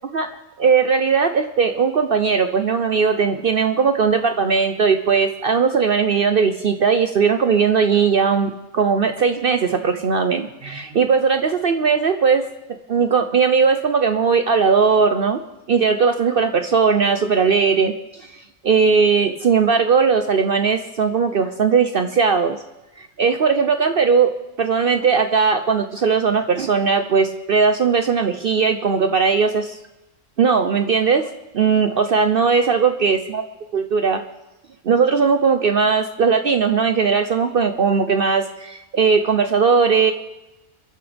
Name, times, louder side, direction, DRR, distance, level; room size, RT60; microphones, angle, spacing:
voice 1, 0.6-12.5 12.9-15.4 15.7-22.6 23.0-24.3 24.6-29.8 30.4-31.3 31.5-33.4 33.7-34.2 34.8-40.1, right 5 dB, 55° right, 8 dB, 0.8 m, -18 dB
28.5 x 11.0 x 3.4 m, 0.99 s
omnidirectional pair, 1.3 m